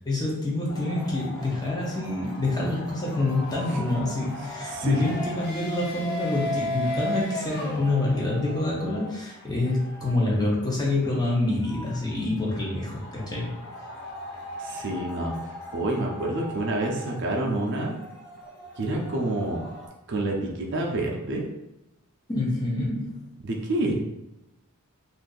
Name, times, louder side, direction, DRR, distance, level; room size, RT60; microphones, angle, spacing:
voice 1, 0.0-13.5 22.3-23.2, left 2 dB, 20° left, -5 dB, 0.8 m, -27 dB
sound 1, 0.7-19.9, left 1 dB, 50° left, 0.8 m, -37 dB
voice 2, 4.7-5.0 14.6-15.3 15.7-18.0 18.8-19.6 20.1-21.4 23.4-23.9, right 2 dB, 55° right, -1 dB, 0.5 m, -28 dB
2.5 x 2.5 x 3.8 m, 0.93 s
head